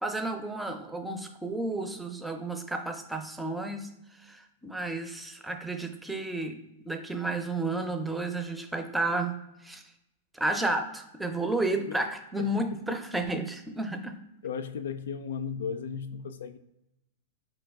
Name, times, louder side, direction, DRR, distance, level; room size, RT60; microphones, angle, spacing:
voice 1, 0.0-3.9 4.3-9.8 10.3-14.2, right 2 dB, 5° right, 0.6 m, -32 dB
voice 2, 12.4-13.0 14.4-16.6, left 6 dB, 85° left, 0.4 m, -36 dB
4.7 x 3.1 x 3.5 m
hypercardioid pair, 120°, 0 cm